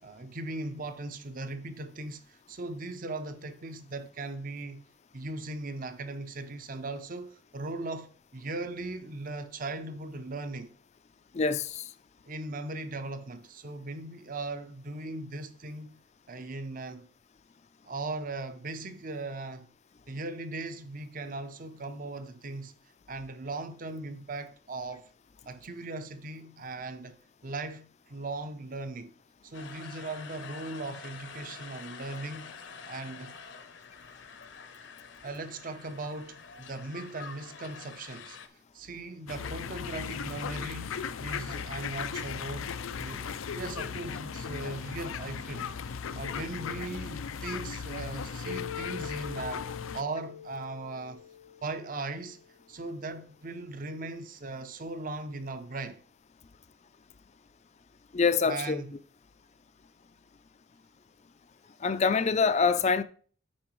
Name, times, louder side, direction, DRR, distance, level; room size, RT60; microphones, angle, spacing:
voice 1, 0.0-4.8 5.1-10.7 12.3-16.0 16.3-17.1 17.8-19.7 20.1-22.8 23.1-25.1 25.5-29.1 29.4-32.6 32.9-33.3 35.2-38.4 38.7-42.7 43.0-45.7 46.1-49.7 49.9-51.3 51.6-52.4 52.7-56.0 58.4-58.9, right 2 dB, 45° right, 0.6 m, -38 dB
voice 2, 11.3-11.9 58.1-58.8 61.8-63.0, left 5 dB, 35° left, 0.4 m, -25 dB
sound 1, 29.5-38.5, left 5 dB, 65° left, 0.8 m, -47 dB
sound 2, 39.3-50.0, left 6 dB, 90° left, 0.5 m, -37 dB
Mallet percussion, 48.5-52.6, left 8 dB, 75° right, 2.8 m, -44 dB
8.6 x 5.3 x 3.1 m
head